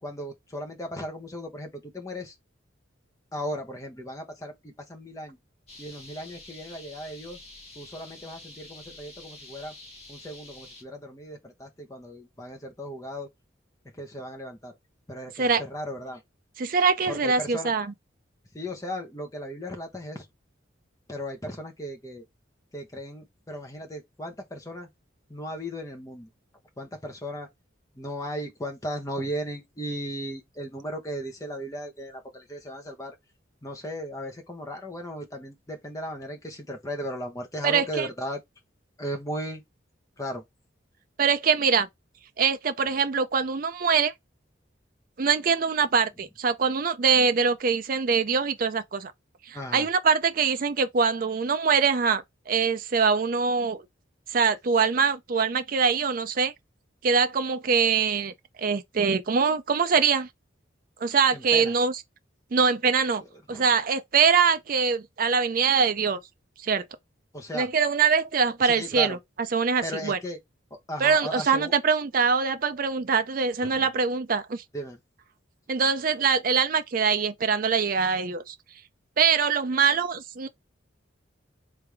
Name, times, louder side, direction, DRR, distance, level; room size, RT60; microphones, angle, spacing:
voice 1, 0.0-2.3 3.3-5.4 5.8-7.4 7.7-9.7 10.1-13.3 13.9-14.8 15.1-16.2 17.1-17.7 18.5-20.3 21.1-22.2 22.7-24.9 25.3-26.3 26.8-27.5 27.9-33.1 33.6-38.4 39.0-39.6 40.2-40.4 49.5-49.9 61.3-61.8 63.2-63.8 67.3-67.7 68.6-69.2 69.8-70.4 70.7-71.7 73.6-73.9 74.7-75.0, equal, 15° left, 0.9 m, -36 dB
sound 1, 5.7-10.8, left 2 dB, 35° left, 1.5 m, -47 dB
voice 2, 16.6-17.9 37.6-38.1 41.2-41.9 42.4-44.1 45.2-49.1 49.5-53.8 54.3-56.5 57.0-58.3 58.6-60.3 61.0-61.9 62.5-63.2 63.5-66.2 66.6-66.8 67.5-69.2 69.5-70.2 71.0-74.6 75.7-78.5 79.2-80.5, right 5 dB, 45° right, 0.4 m, -23 dB
3.4 x 3.3 x 3.4 m
head